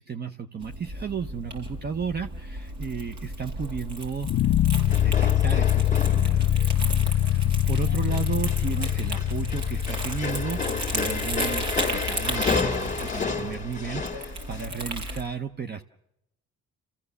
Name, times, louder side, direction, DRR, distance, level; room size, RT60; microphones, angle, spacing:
voice 1, 0.0-4.3 4.7-15.8, right 6 dB, 35° right, 6 dB, 0.8 m, -34 dB
Crumpling crinkling, 0.6-15.2, right 1 dB, 65° right, 5.3 m, -35 dB
sound 1, 4.2-13.3, left 12 dB, 60° left, 0.7 m, -25 dB
sound 2, 4.9-6.5 7.0-7.4 7.7-14.7, left 5 dB, 25° left, 2.3 m, -31 dB
30.0 x 15.0 x 6.9 m, 0.84 s
cardioid pair, 90°, 30 cm